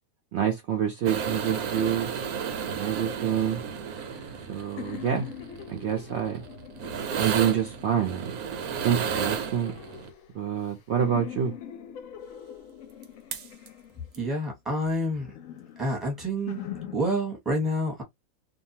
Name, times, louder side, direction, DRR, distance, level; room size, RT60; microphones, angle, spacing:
voice 1, 0.3-2.1 2.7-3.6 4.5-5.3 5.7-6.4 7.2-8.3 8.8-9.7 10.3-11.5, right 9 dB, 60° right, 0.7 m, -27 dB
sound 1, 1.1-10.1 13.0-13.1 13.3-13.7 14.1-14.2, right 7 dB, 75° right, 1.1 m, -33 dB
sound 2, 3.9-8.2 8.8-10.7 11.0-14.3 14.9-17.0, left 9 dB, 70° left, 0.9 m, -43 dB
voice 2, 14.2-15.3 15.8-16.6 16.9-18.0, equal, ahead, 0.9 m, -28 dB
2.6 x 2.3 x 2.7 m
omnidirectional pair, 1.6 m